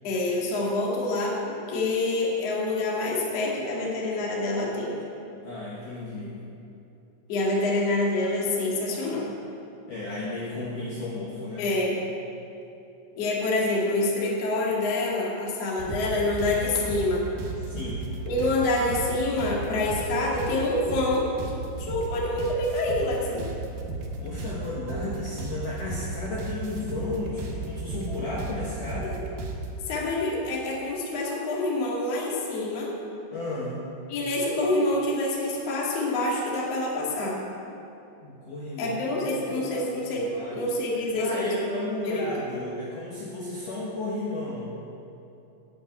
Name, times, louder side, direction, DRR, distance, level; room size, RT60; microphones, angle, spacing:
voice 1, 0.0-5.0 7.3-9.3 11.6-12.0 13.2-17.2 18.3-21.3 21.8-23.4 29.9-32.9 34.1-37.4 38.8-41.5 41.8-42.3, left 2 dB, 55° left, -4 dB, 1.8 m, -27 dB
voice 2, 5.4-6.4 9.9-11.7 17.7-18.0 24.2-29.2 33.3-33.9 38.2-39.0 39.3-39.4 39.7-40.6 41.2-44.7, left 2 dB, 85° left, -6 dB, 1.8 m, -33 dB
sound 1, 15.8-29.7, right 2 dB, 75° right, 2.1 m, -35 dB
8.6 x 8.6 x 8.7 m, 2.8 s
omnidirectional pair, 6.0 m